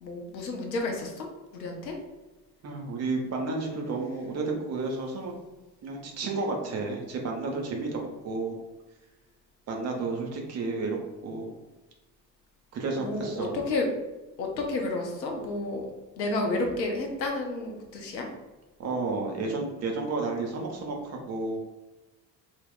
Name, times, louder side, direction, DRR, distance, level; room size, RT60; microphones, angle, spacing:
voice 1, 0.0-1.3 1.5-2.0 13.0-13.9 14.4-15.9 16.2-18.3, left 2 dB, 85° left, 2 dB, 0.6 m, -31 dB
voice 2, 2.6-5.3 5.8-8.6 9.7-11.5 12.7-13.6 18.8-21.6, right 3 dB, 30° right, 1 dB, 0.6 m, -31 dB
2.2 x 2.0 x 3.5 m, 1.1 s
figure-of-eight pair, 55°, 50 cm